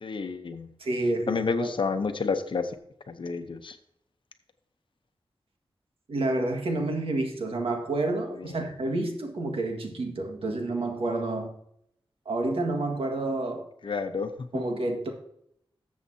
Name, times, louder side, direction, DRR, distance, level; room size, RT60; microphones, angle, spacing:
voice 1, 0.0-0.7 1.3-2.7 3.1-3.8 8.4-8.6 13.8-14.3, left 4 dB, 60° left, 8 dB, 0.8 m, -29 dB
voice 2, 0.8-1.7 6.1-11.5 12.3-13.7 14.5-15.1, right 2 dB, 80° right, 3 dB, 1.7 m, -29 dB
13.5 x 7.3 x 2.8 m, 0.72 s
wide cardioid pair, 135°, 9 cm